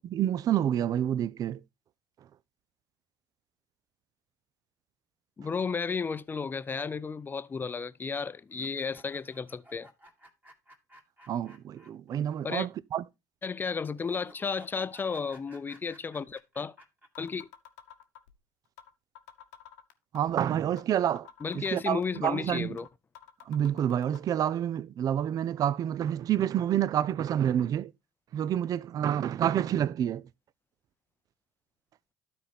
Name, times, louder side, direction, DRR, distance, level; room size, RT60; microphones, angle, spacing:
voice 1, 0.1-1.6 11.3-13.0 20.1-21.3 21.5-22.8 23.5-27.9 28.3-30.2, right 10 dB, 45° right, 0.4 m, -28 dB
voice 2, 5.4-9.9 12.4-12.7 13.4-16.7 17.2-17.5 21.4-22.9, left 5 dB, 25° left, 0.5 m, -33 dB
sound 1, 8.5-12.2 12.5-12.6 14.0-17.1, right 1 dB, 20° right, 2.2 m, -55 dB
sound 2, 16.3-16.4 16.8-16.9 17.1-18.3 18.8-18.9 19.1-20.3 20.8-20.9 21.1-22.3 22.8-22.9 23.1-24.2, left 10 dB, 75° left, 1.0 m, -50 dB
12.5 x 4.3 x 3.4 m
hypercardioid pair, 70°, 9 cm